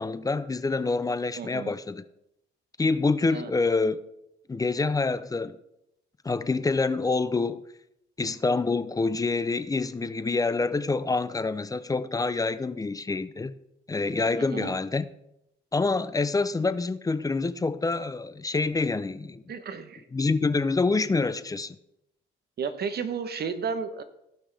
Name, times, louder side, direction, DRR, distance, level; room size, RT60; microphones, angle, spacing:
voice 1, 0.0-2.0 2.8-4.0 4.5-5.6 6.2-7.6 8.2-13.6 13.9-15.1 15.7-19.4 20.1-21.8, left 3 dB, 20° left, 0.5 m, -26 dB
voice 2, 1.4-1.8 3.3-3.5 14.5-14.8 19.5-20.0 22.6-24.0, right 6 dB, 55° right, 1.0 m, -32 dB
15.5 x 5.7 x 3.4 m
cardioid pair, 90°, 20 cm